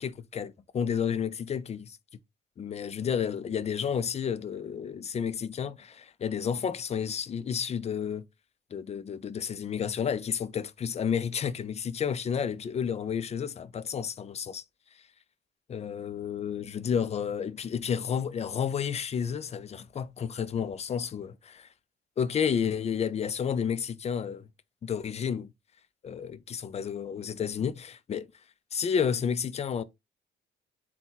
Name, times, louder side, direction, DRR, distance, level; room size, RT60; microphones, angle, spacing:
voice 1, 0.0-2.0 2.6-8.2 8.7-14.6 15.7-21.7 22.2-24.5 24.8-25.5 26.0-28.3 28.7-29.8, left 7 dB, 35° left, 0.4 m, -31 dB
3.9 x 2.3 x 3.8 m
cardioid pair, 90°, 20 cm